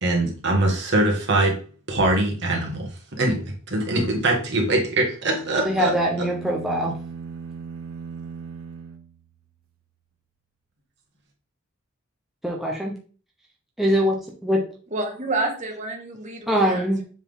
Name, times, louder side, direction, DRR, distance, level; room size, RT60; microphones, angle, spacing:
voice 1, 0.0-1.6 1.9-6.3, right 2 dB, 55° right, 0 dB, 1.8 m, -23 dB
sound 1, 5.3-9.7, right 5 dB, 90° right, 0.7 m, -38 dB
voice 2, 5.6-6.9 12.4-13.0 13.8-14.6 16.5-17.0, equal, ahead, -2 dB, 0.9 m, -23 dB
voice 3, 14.9-17.0, right 2 dB, 35° right, 2 dB, 1.4 m, -29 dB
7.3 x 3.8 x 3.6 m, 0.39 s
head